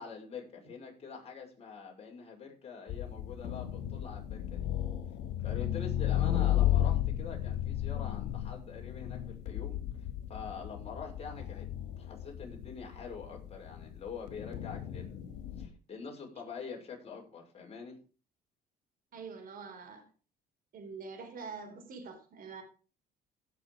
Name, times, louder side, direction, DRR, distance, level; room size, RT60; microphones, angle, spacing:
voice 1, 0.0-4.7 5.4-11.7 12.0-15.2 15.6-18.0, left 5 dB, 35° left, 6.0 m, -45 dB
sound 1, 2.9-15.7, left 11 dB, 80° left, 2.5 m, -34 dB
voice 2, 19.1-20.1 20.7-22.6, right 5 dB, 55° right, 4.3 m, -45 dB
16.0 x 6.8 x 5.0 m
cardioid pair, 110°, 17 cm